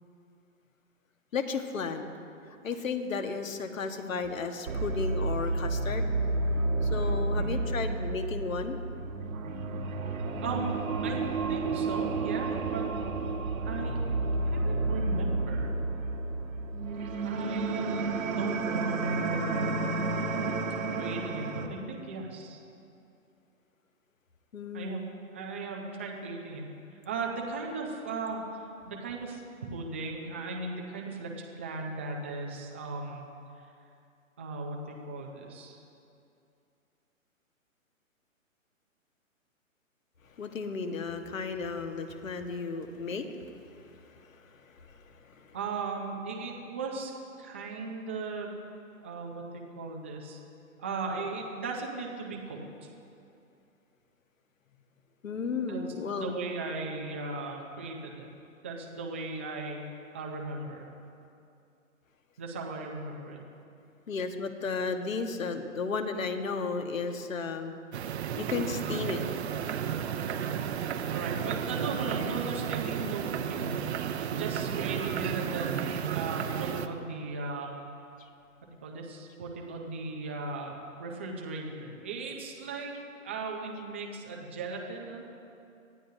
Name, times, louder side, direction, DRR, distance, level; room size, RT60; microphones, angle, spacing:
voice 1, 1.3-2.1 2.6-6.1 6.8-8.8 24.5-25.0 40.4-45.6 55.2-56.3 64.1-67.8 68.4-69.2, left 4 dB, 70° left, 6 dB, 1.5 m, -34 dB
sound 1, 4.7-21.7, right 3 dB, 75° right, 1.6 m, -31 dB
voice 2, 7.2-7.6 10.4-11.2 11.5-12.8 13.6-14.0 14.5-15.7 17.2-19.8 20.9-22.6 24.7-25.0 25.3-26.7 27.1-28.4 28.9-29.4 29.7-33.2 34.4-35.8 45.5-47.1 47.4-48.5 49.0-50.4 50.8-52.6 55.7-55.8 56.2-58.3 58.6-59.8 60.1-60.9 62.4-63.4 71.1-73.7 74.3-77.7 78.8-85.2, right 3 dB, 10° right, 0 dB, 0.4 m, -37 dB
sound 2, 67.9-76.9, right 8 dB, 50° right, 0.8 m, -33 dB
23.0 x 15.0 x 2.7 m, 2.5 s
hypercardioid pair, 145°, 41 cm